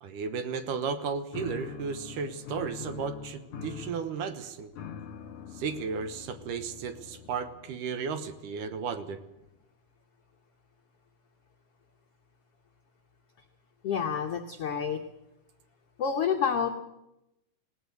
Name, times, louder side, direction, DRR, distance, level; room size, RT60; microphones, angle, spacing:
voice 1, 0.0-4.7 5.5-9.2, right 5 dB, 70° right, 10 dB, 2.4 m, -34 dB
sound 1, 1.3-7.8, left 6 dB, 55° left, 1.9 m, -43 dB
voice 2, 13.8-15.0 16.0-16.7, left 7 dB, 80° left, 5 dB, 1.3 m, -28 dB
19.0 x 18.0 x 8.1 m, 0.90 s
omnidirectional pair, 4.3 m